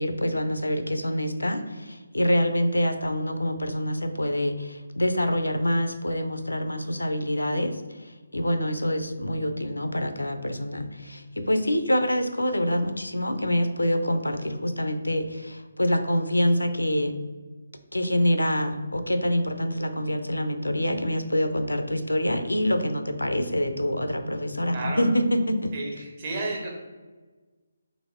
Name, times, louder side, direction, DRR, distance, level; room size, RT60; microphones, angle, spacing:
voice 1, 0.0-17.2 17.9-25.7, equal, 85° left, 8 dB, 0.5 m, -26 dB
voice 2, 25.7-26.7, right 2 dB, 35° right, -2 dB, 1.3 m, -32 dB
4.0 x 3.3 x 3.5 m, 1.3 s
figure-of-eight pair, 145°, 0 cm